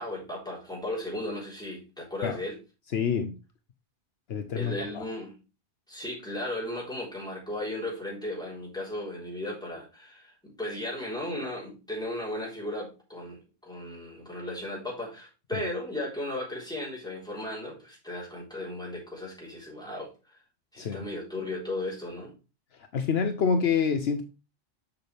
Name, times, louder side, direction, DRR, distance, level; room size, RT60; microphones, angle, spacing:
voice 1, 0.0-2.6 4.5-5.3 5.9-20.4 20.7-22.3, left 1 dB, 5° left, 3.7 m, -36 dB
voice 2, 2.9-3.4 4.3-5.0 15.5-15.6 20.8-21.1 22.7-24.2, left 6 dB, 70° left, 1.0 m, -27 dB
6.9 x 6.7 x 3.3 m
omnidirectional pair, 1.1 m